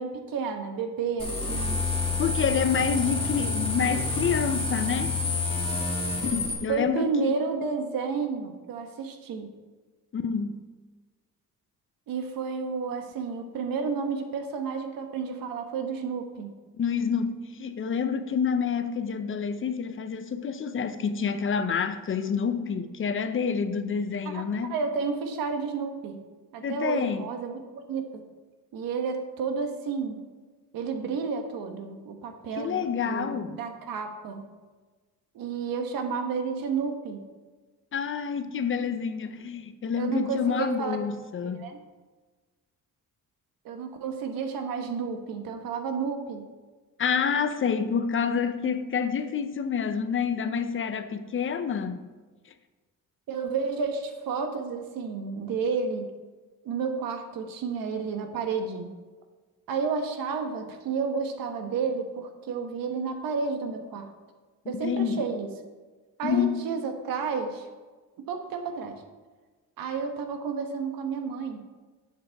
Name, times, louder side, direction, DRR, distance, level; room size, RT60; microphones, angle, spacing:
voice 1, 0.0-1.8 6.7-9.5 12.1-16.5 24.2-24.4 24.7-26.2 26.5-28.2 28.7-30.2 30.7-34.4 35.3-37.2 40.0-41.0 41.4-41.8 43.6-46.4 53.3-56.1 56.6-58.9 59.7-64.1 64.7-65.5 66.2-67.7 68.3-69.0 69.8-71.6, right 5 dB, 85° right, 1.3 m, -31 dB
sound 1, 1.2-6.5, left 3 dB, 15° left, 2.0 m, -28 dB
voice 2, 2.2-5.2 6.2-7.4 10.1-10.6 16.7-24.8 26.6-27.3 32.6-33.6 37.9-41.7 47.0-52.1 64.6-65.2 66.2-66.6, left 6 dB, 40° left, 0.6 m, -28 dB
11.5 x 7.5 x 3.5 m
cardioid pair, 130°, 34 cm